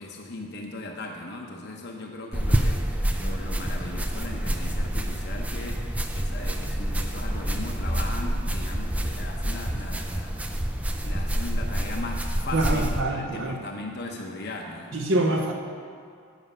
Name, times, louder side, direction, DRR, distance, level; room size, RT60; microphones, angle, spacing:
voice 1, 0.0-10.5 11.0-14.9, left 2 dB, 50° left, 1 dB, 0.7 m, -38 dB
sound 1, 2.3-13.0, right 1 dB, 5° right, 0.3 m, -27 dB
voice 2, 12.5-13.6 14.9-15.5, right 2 dB, 60° right, 1 dB, 0.7 m, -25 dB
8.2 x 7.4 x 5.4 m, 2.3 s
head